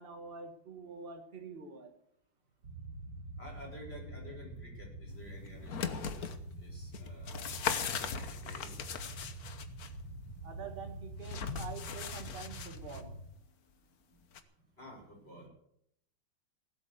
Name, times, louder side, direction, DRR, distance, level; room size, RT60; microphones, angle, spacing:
voice 1, 0.0-1.9 10.4-13.1, right 5 dB, 30° right, 5 dB, 1.8 m, -46 dB
sound 1, 2.6-13.2, right 1 dB, 75° right, 2.5 m, -46 dB
voice 2, 3.4-6.3 6.6-7.4 8.0-9.0 14.1-14.3 14.8-15.5, equal, 30° left, -2 dB, 5.8 m, -52 dB
sound 2, 5.5-6.4 6.9-9.9 11.2-13.0 14.3-14.4, left 7 dB, 55° left, 1.4 m, -38 dB
17.5 x 8.1 x 8.2 m, 0.76 s
omnidirectional pair, 2.0 m